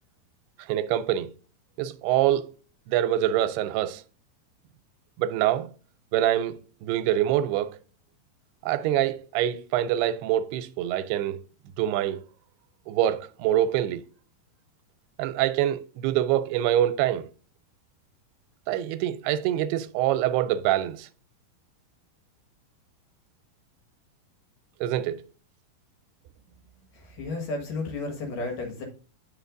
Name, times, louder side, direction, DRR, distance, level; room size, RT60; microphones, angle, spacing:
voice 1, 0.6-1.3 1.8-2.5 2.9-4.0 5.2-5.7 6.1-7.8 8.6-11.4 11.8-12.2 12.9-14.0 15.2-17.3 18.7-21.1 24.8-25.2, right 12 dB, 90° right, 2.6 m, -25 dB
voice 2, 26.9-28.8, left 3 dB, 65° left, 3.1 m, -33 dB
9.7 x 5.7 x 2.5 m
omnidirectional pair, 4.5 m